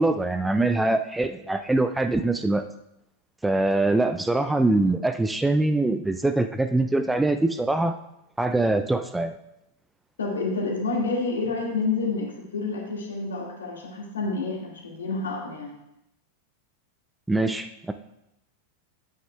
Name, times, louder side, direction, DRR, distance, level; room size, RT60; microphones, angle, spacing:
voice 1, 0.0-2.6 3.4-7.9 8.4-9.3 17.3-17.9, right 2 dB, 5° right, 9 dB, 0.4 m, -23 dB
voice 2, 10.2-15.8, left 3 dB, 70° left, 0 dB, 1.9 m, -29 dB
9.2 x 9.2 x 2.3 m, 0.84 s
figure-of-eight pair, 90°, 0 cm